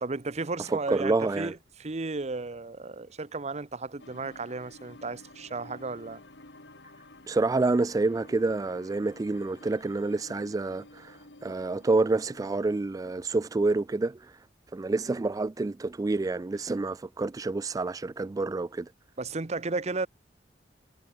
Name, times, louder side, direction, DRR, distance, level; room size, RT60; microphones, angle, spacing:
voice 1, 0.0-6.2 19.2-20.1, right 3 dB, 40° right, 0.9 m, -34 dB
voice 2, 0.6-1.5 7.3-14.5 14.7-18.9, right 3 dB, 20° right, 0.3 m, -28 dB
sound 1, 4.0-12.8, left 2 dB, 90° left, 3.6 m, -51 dB
head